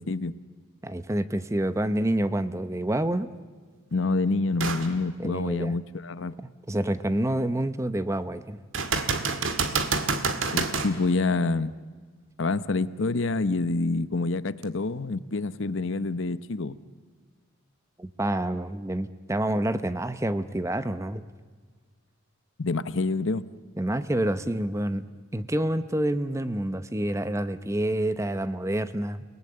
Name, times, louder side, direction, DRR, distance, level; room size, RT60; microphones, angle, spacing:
voice 1, 0.1-0.4 3.9-6.3 10.5-11.8 12.4-16.8 22.6-23.5, left 3 dB, 60° left, 15 dB, 0.8 m, -27 dB
voice 2, 0.8-3.3 5.2-5.7 6.7-8.6 18.0-21.2 23.8-25.0 25.3-29.2, right 1 dB, 15° right, 12 dB, 0.8 m, -28 dB
sound 1, 4.6-4.9 5.4-5.5 8.7-10.9 14.6-14.7, right 4 dB, 65° right, 2.0 m, -27 dB
29.5 x 19.0 x 8.7 m, 1.5 s
head